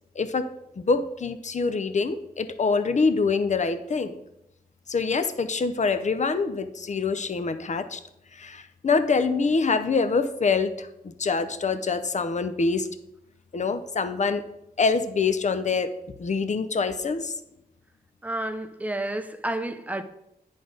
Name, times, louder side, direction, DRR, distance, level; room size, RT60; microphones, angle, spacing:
voice 1, 0.2-0.5 0.8-4.2 4.9-8.0 8.4-10.9 11.2-12.9 13.5-14.4 14.8-15.9 16.2-17.3, left 4 dB, 45° left, 0.6 m, -25 dB
voice 2, 18.2-20.0, right 1 dB, 10° right, 0.6 m, -30 dB
10.0 x 5.1 x 3.9 m
wide cardioid pair, 105°, 16 cm